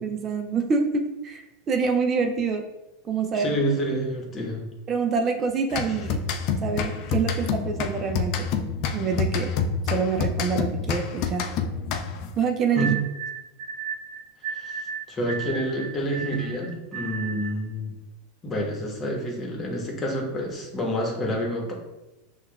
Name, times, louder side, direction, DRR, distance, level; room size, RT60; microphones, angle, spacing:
voice 1, 0.0-2.6 3.1-3.5 4.9-6.3 6.6-8.5 8.9-9.5 9.9-11.5 12.4-12.9, right 5 dB, 35° right, 4 dB, 0.4 m, -26 dB
voice 2, 3.3-4.6 12.8-12.9 14.5-17.9 18.4-21.7, equal, 30° left, 0 dB, 1.1 m, -28 dB
sound 1, 5.7-12.4, left 5 dB, 55° left, 0.4 m, -28 dB
sound 2, 12.8-17.6, right 6 dB, 60° right, 0.9 m, -34 dB
6.1 x 2.3 x 2.3 m, 0.99 s
hypercardioid pair, 100°, 0 cm